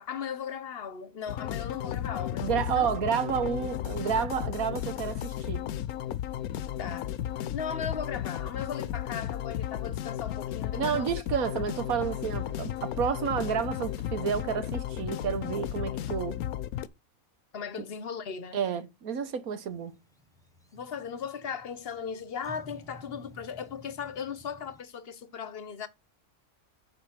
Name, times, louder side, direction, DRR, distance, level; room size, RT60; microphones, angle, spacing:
voice 1, 0.0-2.9 6.8-7.1 7.4-11.1 17.5-18.6 20.7-25.9, left 7 dB, 45° left, 1.0 m, -37 dB
sound 1, 1.3-16.9, left 11 dB, 85° left, 1.1 m, -34 dB
voice 2, 2.4-5.7 10.8-16.4 18.5-19.9, right 7 dB, 75° right, 1.5 m, -30 dB
sound 2, 19.7-24.8, left 1 dB, 5° left, 0.9 m, -53 dB
7.4 x 5.0 x 5.7 m
omnidirectional pair, 1.5 m